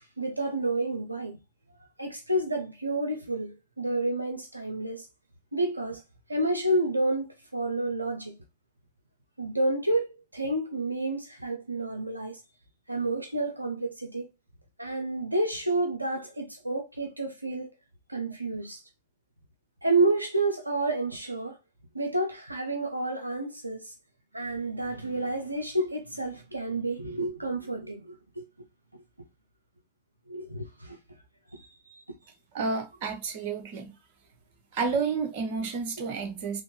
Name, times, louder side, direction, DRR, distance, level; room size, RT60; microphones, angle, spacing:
voice 1, 0.0-1.4 2.0-5.1 5.5-6.0 6.3-8.4 9.4-12.4 12.9-14.3 14.8-17.7 18.1-18.8 19.8-21.6 21.9-23.9 24.3-28.4 28.9-29.0 30.3-31.0 31.5-32.2, right 2 dB, 85° right, 0.5 m, -30 dB
voice 2, 32.5-33.9 34.7-36.6, right 4 dB, 50° right, 1.0 m, -30 dB
3.7 x 2.9 x 3.7 m
figure-of-eight pair, 90°, 0 cm